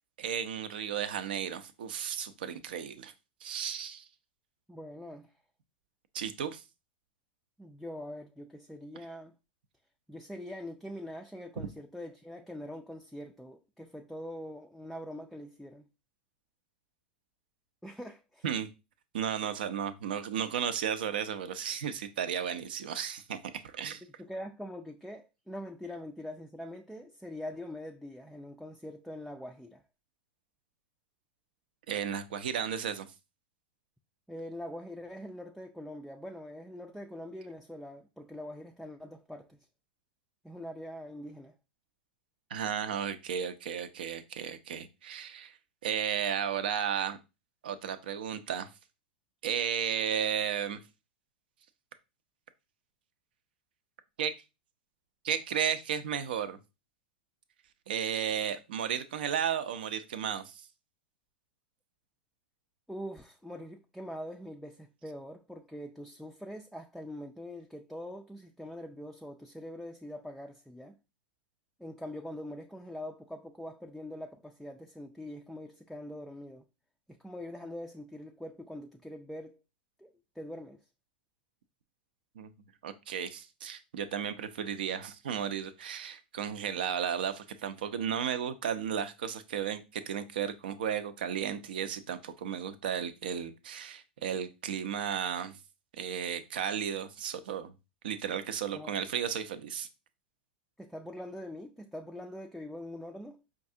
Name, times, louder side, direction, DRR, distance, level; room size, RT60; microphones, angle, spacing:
voice 1, 0.2-3.1 3.4-4.0 6.1-6.6 11.6-11.7 18.4-18.7 19.1-23.4 23.6-24.0 31.9-33.1 42.5-45.5 45.8-47.2 47.6-48.7 49.4-50.8 54.2-54.3 55.2-56.6 57.9-60.6 82.4-82.5 82.8-95.6 96.0-97.7 98.0-99.9, right 8 dB, 70° right, 0.5 m, -34 dB
voice 2, 4.7-5.3 7.6-9.3 10.1-15.9 17.8-18.5 24.0-29.8 34.3-39.6 40.4-41.6 62.9-71.0 71.8-76.7 77.1-79.6 80.0-80.8 98.7-99.0 100.8-103.4, left 1 dB, ahead, 0.3 m, -43 dB
5.2 x 2.4 x 2.6 m
hypercardioid pair, 105°, 5 cm